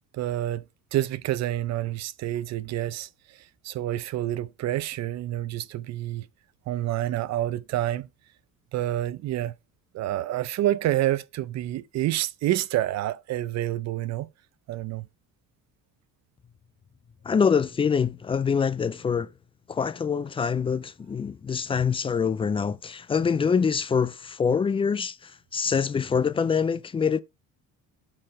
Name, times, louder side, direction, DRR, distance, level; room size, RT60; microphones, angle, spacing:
voice 1, 0.1-0.6 0.9-3.4 3.6-6.3 6.7-8.1 8.7-9.5 9.9-14.3 14.7-15.1, right 13 dB, 50° right, 0.6 m, -28 dB
voice 2, 17.2-19.3 19.7-27.2, left 6 dB, 15° left, 0.3 m, -25 dB
7.5 x 4.5 x 4.7 m
cardioid pair, 125°, 34 cm